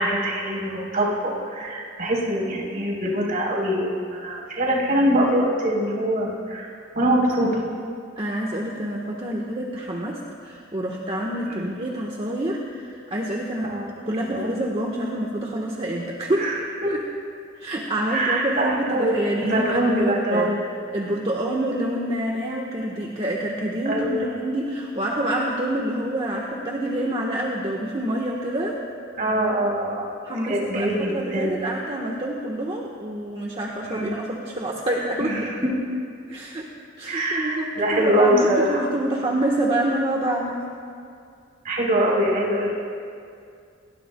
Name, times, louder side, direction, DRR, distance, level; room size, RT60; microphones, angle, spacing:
voice 1, 0.0-6.7 7.0-7.6 11.5-11.7 13.6-13.9 14.2-14.5 16.4-16.9 18.1-19.1 19.4-20.6 23.9-24.3 29.2-30.1 30.4-31.6 33.8-34.1 35.2-35.7 37.1-38.8 41.6-42.7, right 1 dB, 45° right, -3 dB, 4.0 m, -23 dB
voice 2, 8.2-13.7 14.1-16.5 16.8-17.0 17.5-20.5 20.9-28.8 30.2-35.4 36.3-36.7 37.0-40.6, right 1 dB, 30° right, -2 dB, 1.3 m, -27 dB
28.5 x 21.0 x 2.3 m, 2.3 s
head